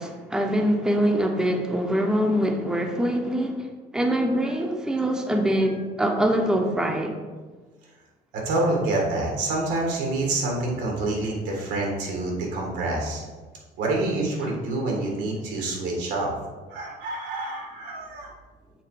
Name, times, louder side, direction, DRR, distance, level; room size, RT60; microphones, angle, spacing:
voice 1, 0.0-3.6 3.9-7.1, equal, 5° right, 3 dB, 0.6 m, -24 dB
voice 2, 8.5-13.2 13.8-16.3 16.7-18.3, right 2 dB, 90° right, -1 dB, 1.8 m, -27 dB
6.7 x 3.2 x 4.9 m, 1.3 s
cardioid pair, 110°, 17 cm